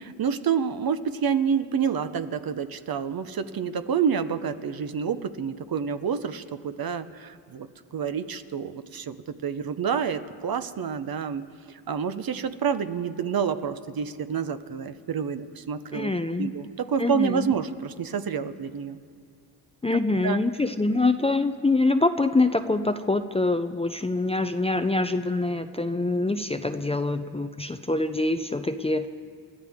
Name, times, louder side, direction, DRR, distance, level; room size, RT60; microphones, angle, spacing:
voice 1, 0.2-7.7 7.9-11.4 11.9-16.1 16.4-19.0 20.2-20.4, right 7 dB, 50° right, 10 dB, 1.0 m, -28 dB
voice 2, 15.9-16.5 17.0-17.5 19.8-29.1, left 2 dB, 15° left, 9 dB, 0.6 m, -25 dB
30.0 x 13.0 x 3.7 m, 2.3 s
cardioid pair, 65°, 47 cm